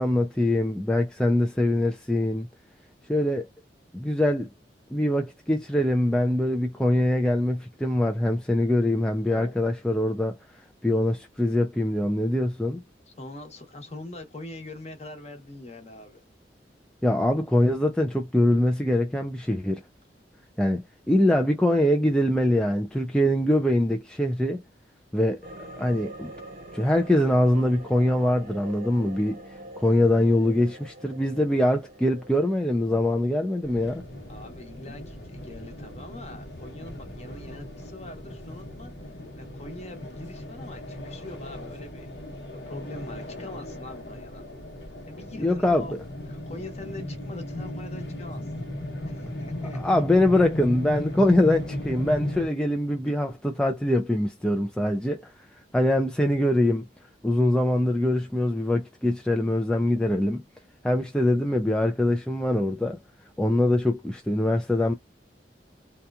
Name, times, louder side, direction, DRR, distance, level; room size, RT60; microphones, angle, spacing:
voice 1, 0.0-2.5 3.1-3.4 3.9-4.5 4.9-10.4 10.8-12.8 17.0-19.8 20.6-24.6 25.1-25.4 25.8-26.3 26.7-29.4 29.8-34.0 45.4-45.9 49.7-55.3 55.7-56.8 57.2-60.4 60.8-63.0 63.4-64.9, left 1 dB, 5° left, 0.3 m, -23 dB
voice 2, 9.2-9.6 13.1-16.2 34.3-42.1 42.5-44.5 45.1-46.0 46.3-48.7 49.0-50.0 53.1-53.2 60.6-60.7, left 1 dB, 40° left, 0.9 m, -43 dB
sound 1, 25.4-37.6 37.9-38.0, right 1 dB, 50° right, 0.7 m, -45 dB
sound 2, 33.6-52.5, left 1 dB, 75° left, 1.0 m, -37 dB
2.8 x 2.3 x 2.3 m
head